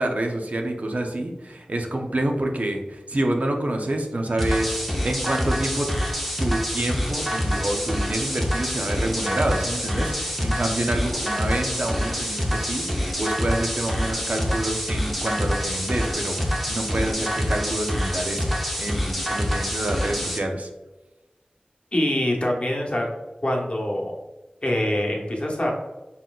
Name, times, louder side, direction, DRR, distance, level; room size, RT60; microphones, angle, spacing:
voice 1, 0.0-5.9 6.4-20.7, right 1 dB, 60° right, 2 dB, 0.6 m, -27 dB
sound 1, 4.4-20.4, equal, ahead, 0.7 m, -26 dB
voice 2, 21.9-23.1 23.4-24.1 24.6-25.7, left 1 dB, 45° left, 0 dB, 0.9 m, -24 dB
4.1 x 3.8 x 2.3 m, 1.1 s
wide cardioid pair, 50°, 3 cm